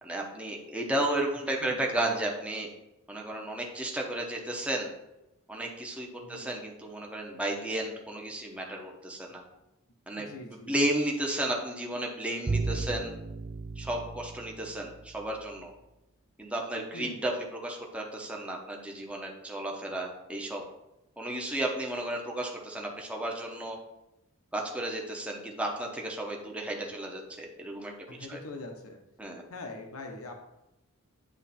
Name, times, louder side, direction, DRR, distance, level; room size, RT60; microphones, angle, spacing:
voice 1, 0.0-2.7 3.1-4.9 5.5-9.4 10.1-13.1 13.8-15.7 16.4-20.6 21.2-23.8 24.5-27.9 28.3-28.4 29.2-29.4, right 1 dB, 5° right, -1 dB, 0.9 m, -33 dB
voice 2, 10.1-10.8 16.9-17.2 28.1-29.0 29.5-30.4, left 2 dB, 70° left, 3 dB, 0.9 m, -43 dB
Bowed string instrument, 12.5-15.5, right 3 dB, 25° right, 0.3 m, -35 dB
9.3 x 3.2 x 4.2 m, 0.92 s
head